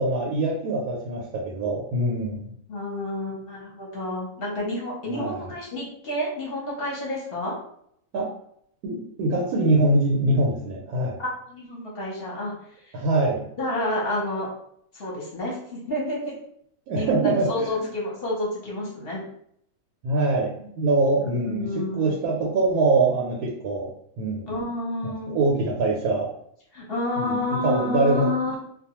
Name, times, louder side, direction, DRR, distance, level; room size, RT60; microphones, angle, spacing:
voice 1, 0.0-2.5 5.1-5.4 8.1-8.3 8.8-11.2 12.9-13.5 16.9-17.7 20.0-23.9 24.2-24.5 25.0-26.3 27.2-28.3, right 2 dB, 85° right, -1 dB, 1.1 m, -23 dB
voice 2, 2.7-7.5 11.2-12.5 13.6-14.5 14.9-16.4 16.9-19.3 21.2-22.1 24.5-25.3 26.7-28.6, left 1 dB, 50° left, -4 dB, 0.8 m, -29 dB
2.3 x 2.2 x 2.9 m, 0.69 s
omnidirectional pair, 1.6 m